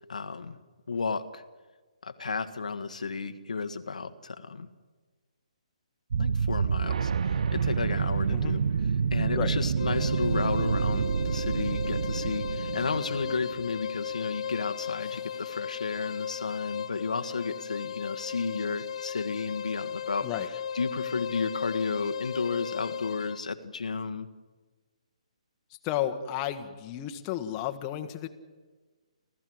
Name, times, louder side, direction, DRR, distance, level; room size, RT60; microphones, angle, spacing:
voice 1, 0.1-0.6 0.9-1.4 2.0-4.7 6.2-8.6 9.1-20.3 20.7-24.3, left 4 dB, 80° left, 8 dB, 1.3 m, -33 dB
sound 1, 6.1-13.8, right 6 dB, 65° right, 0.7 m, -28 dB
sound 2, 9.8-23.4, left 8 dB, 60° left, 0.7 m, -36 dB
voice 2, 25.8-28.3, left 12 dB, 25° left, 6 dB, 1.5 m, -32 dB
30.0 x 14.0 x 7.9 m, 1.4 s
hypercardioid pair, 145°, 4 cm